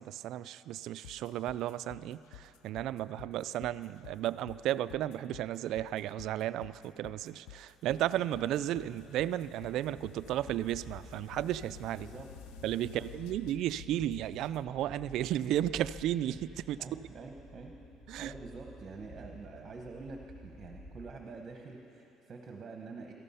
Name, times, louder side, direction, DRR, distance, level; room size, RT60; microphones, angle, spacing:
voice 1, 0.0-12.1 12.6-16.8 18.1-18.3, right 12 dB, 60° right, 15 dB, 0.3 m, -34 dB
sound 1, 1.0-14.6, left 13 dB, 85° left, 0.3 m, -52 dB
sound 2, 9.9-21.4, equal, 50° left, 3.1 m, -53 dB
voice 2, 12.8-13.1 16.8-17.7 18.2-23.1, right 4 dB, 30° right, 2 dB, 1.0 m, -46 dB
17.5 x 14.0 x 5.6 m, 2.9 s
cardioid pair, 160°, 0 cm